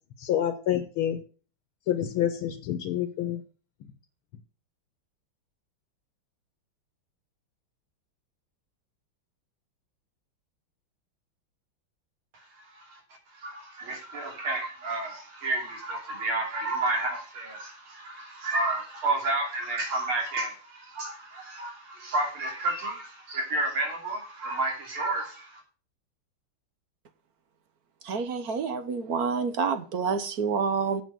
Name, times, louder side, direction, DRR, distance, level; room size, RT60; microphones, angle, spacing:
voice 1, 0.2-1.2 1.9-3.4, left 10 dB, 80° left, 1.9 m, -28 dB
voice 2, 12.5-13.0 13.3-25.6, right 2 dB, 80° right, 4.0 m, -31 dB
voice 3, 28.0-31.0, right 5 dB, 55° right, 1.2 m, -28 dB
7.9 x 7.3 x 7.6 m
omnidirectional pair, 2.3 m